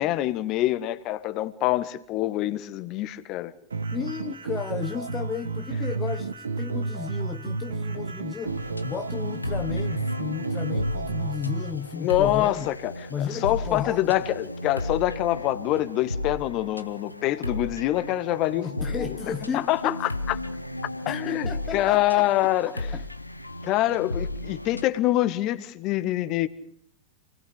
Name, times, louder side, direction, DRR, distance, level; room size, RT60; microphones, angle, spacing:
voice 1, 0.0-3.5 12.0-18.7 19.0-19.1 19.5-20.4 21.1-22.9 23.6-26.5, left 15 dB, 40° left, 1.8 m, -25 dB
sound 1, 3.7-11.7, right 4 dB, 75° right, 1.8 m, -31 dB
voice 2, 3.9-12.7 13.1-14.1 18.6-20.0 21.1-23.0, left 7 dB, 20° left, 1.1 m, -34 dB
sound 2, 8.4-24.8, left 2 dB, 85° left, 1.1 m, -35 dB
28.5 x 20.0 x 8.3 m
figure-of-eight pair, 90°, 0 cm